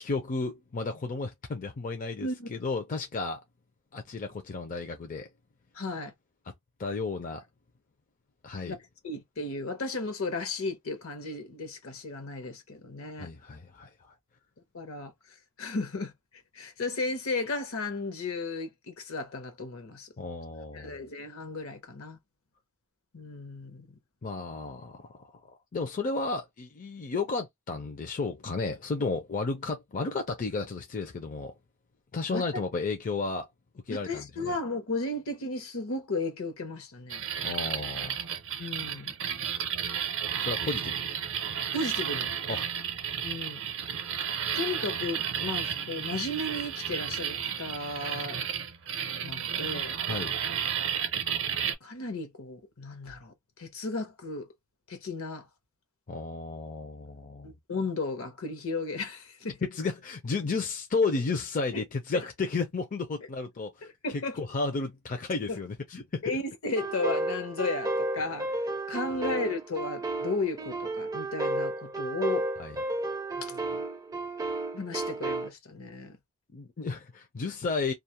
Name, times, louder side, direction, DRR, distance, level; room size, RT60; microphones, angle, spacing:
voice 1, 0.0-3.4 3.9-5.3 6.8-7.4 8.4-8.7 13.2-14.1 20.2-20.9 24.2-31.5 32.1-33.5 33.9-34.5 37.4-38.3 40.4-41.0 42.5-42.7 50.1-50.3 56.1-57.5 59.6-66.4 72.6-72.8 76.5-77.9, left 3 dB, 40° left, 0.5 m, -33 dB
voice 2, 5.7-6.1 8.6-8.8 9.0-13.3 14.7-15.1 15.6-16.1 16.5-20.1 20.7-22.2 23.1-23.9 32.3-32.4 33.9-37.2 38.6-39.1 41.7-42.3 43.2-43.6 44.5-48.4 49.2-50.0 51.8-54.5 54.9-55.5 57.4-59.6 61.7-61.8 62.1-62.2 63.8-64.4 65.5-65.6 66.2-72.5 73.4-73.8 74.7-76.2, left 3 dB, 70° left, 0.8 m, -34 dB
sound 1, 37.1-51.7, right 8 dB, 60° right, 0.6 m, -32 dB
sound 2, 66.8-75.5, right 2 dB, 15° right, 0.4 m, -32 dB
2.4 x 2.0 x 2.8 m
head